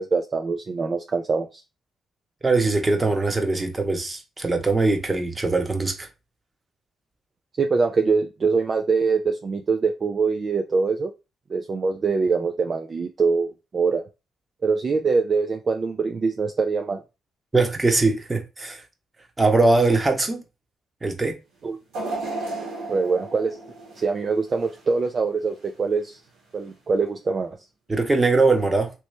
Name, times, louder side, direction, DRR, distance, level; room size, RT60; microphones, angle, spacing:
voice 1, 0.0-1.6 7.6-11.1 11.5-14.0 14.6-17.0 21.6-21.8 22.9-23.6 24.0-26.2 26.5-27.6, right 4 dB, 45° right, 0.4 m, -23 dB
voice 2, 2.4-6.1 17.5-18.8 19.4-20.4 21.0-21.4 27.9-28.9, right 3 dB, 25° right, 1.1 m, -21 dB
sound 1, 21.9-25.1 25.5-25.7 26.7-26.8, right 2 dB, 85° right, 1.6 m, -34 dB
3.1 x 3.0 x 3.2 m
hypercardioid pair, 50°, 0 cm